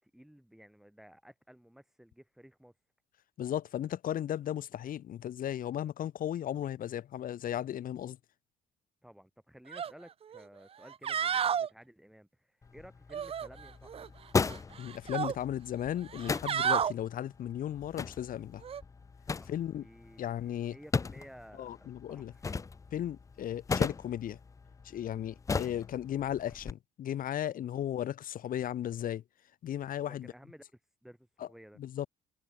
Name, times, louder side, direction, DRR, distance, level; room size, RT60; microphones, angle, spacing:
voice 1, 0.0-2.7 9.0-14.1 19.4-22.6 27.7-28.0 30.1-31.8, equal, ahead, 6.3 m, -55 dB
voice 2, 3.4-8.2 14.8-18.6 19.5-19.9 20.2-20.8 21.6-22.3 22.9-24.4 24.8-29.2 29.6-30.3 31.4-31.5 31.8-32.1, left 11 dB, 55° left, 1.7 m, -35 dB
sound 1, 9.7-9.9 10.3-10.4 10.9-11.7 13.1-14.1 14.4-15.3 16.1-16.9 18.6-18.8, right 8 dB, 35° right, 0.6 m, -32 dB
sound 2, 12.6-26.7, left 4 dB, 20° left, 0.5 m, -38 dB
cardioid pair, 110°, 17 cm